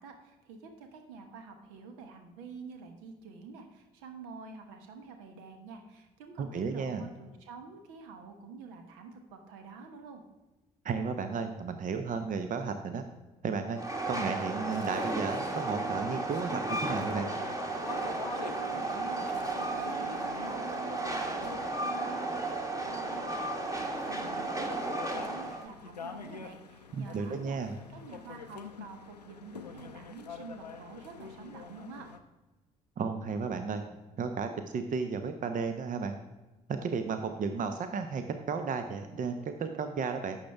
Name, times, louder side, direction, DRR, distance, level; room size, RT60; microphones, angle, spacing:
voice 1, 0.0-10.2 18.1-22.5 22.8-27.6 27.9-32.0, right 4 dB, 70° right, 6 dB, 1.1 m, -48 dB
voice 2, 6.4-7.0 10.8-13.0 13.4-13.8 14.1-17.3 26.9-27.8 33.0-33.8 34.2-36.2 36.7-40.4, right 5 dB, 40° right, 8 dB, 0.8 m, -33 dB
Train, 13.8-25.7, right 2 dB, 15° right, 1.5 m, -34 dB
sound 1, 14.7-32.2, left 6 dB, 90° left, 0.4 m, -47 dB
11.5 x 7.2 x 3.4 m, 1.1 s
figure-of-eight pair, 45°, 20 cm